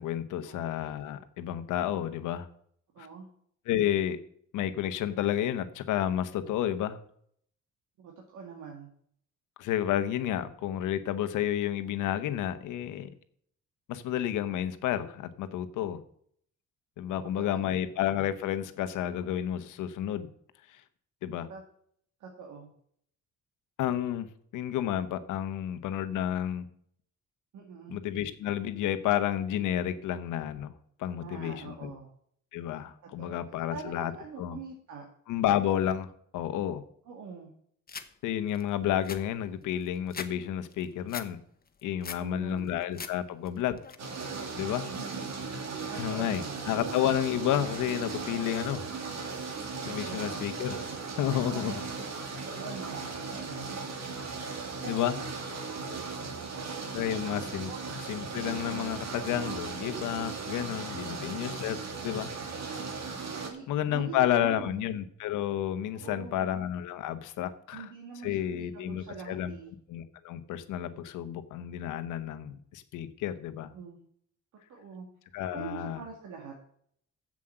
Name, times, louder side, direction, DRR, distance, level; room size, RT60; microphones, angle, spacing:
voice 1, 0.0-2.5 3.0-3.1 3.7-4.2 4.5-7.0 9.6-13.1 13.9-16.0 17.0-20.3 20.7-20.8 21.2-21.5 23.8-24.3 24.5-26.7 27.9-30.7 31.0-31.9 32.5-34.1 34.4-34.6 35.3-36.8 38.2-41.4 41.8-43.8 44.5-44.9 46.0-48.9 49.9-50.8 51.2-51.7 54.8-55.2 56.9-57.7 58.1-61.8 62.0-62.3 62.7-63.0 63.7-67.9 68.2-69.5 69.9-73.7 75.3-76.0, left 11 dB, 90° left, 11 dB, 1.1 m, -31 dB
voice 2, 2.9-3.3 8.0-8.9 17.2-17.8 21.5-21.6 22.2-22.7 27.5-28.0 31.2-32.1 33.2-35.0 37.1-37.5 42.2-42.8 44.8-45.2 45.9-46.7 50.0-50.5 51.4-51.8 52.4-53.9 56.4-56.8 57.7-57.8 61.1-61.2 63.5-64.9 65.9-66.5 67.7-69.7 73.7-74.0 74.7-75.1 75.5-76.5, right 5 dB, 80° right, 0 dB, 2.1 m, -44 dB
sound 1, 37.9-38.1 38.5-38.6 38.9-40.3 40.6-41.3 41.7-42.3 42.7-43.1 43.4-43.9, left 5 dB, 30° left, 1.1 m, -41 dB
sound 2, 44.0-63.5, right 4 dB, 60° right, 2.4 m, -37 dB
7.5 x 7.5 x 7.7 m, 0.64 s
cardioid pair, 90°, 30 cm